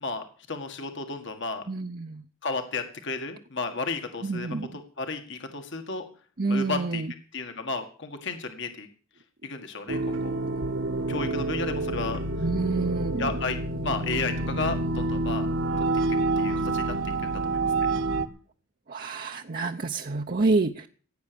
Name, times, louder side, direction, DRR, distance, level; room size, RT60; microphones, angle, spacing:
voice 1, 0.0-1.6 2.4-6.0 6.5-7.0 7.3-8.9 9.4-10.4 11.1-12.2 13.2-13.6 13.8-15.5 15.9-16.0 16.4-17.9, left 3 dB, 60° left, 6 dB, 1.8 m, -33 dB
voice 2, 1.7-2.2 4.2-4.7 6.4-7.1 12.4-13.3 18.9-20.9, right 3 dB, 45° right, 4 dB, 0.7 m, -28 dB
sound 1, 9.9-18.3, right 2 dB, 70° right, 1.4 m, -28 dB
16.5 x 9.2 x 6.9 m, 0.43 s
head